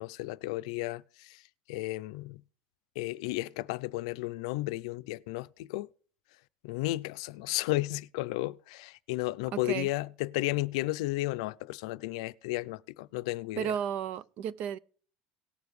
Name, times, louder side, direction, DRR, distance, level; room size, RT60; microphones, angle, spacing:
voice 1, 0.0-1.4 1.7-2.4 3.0-5.9 6.6-13.7, left 19 dB, 80° left, 0.5 m, -33 dB
voice 2, 9.5-9.9 13.6-14.8, right 9 dB, 45° right, 0.5 m, -33 dB
18.5 x 6.9 x 3.2 m
cardioid pair, 165°, 3 cm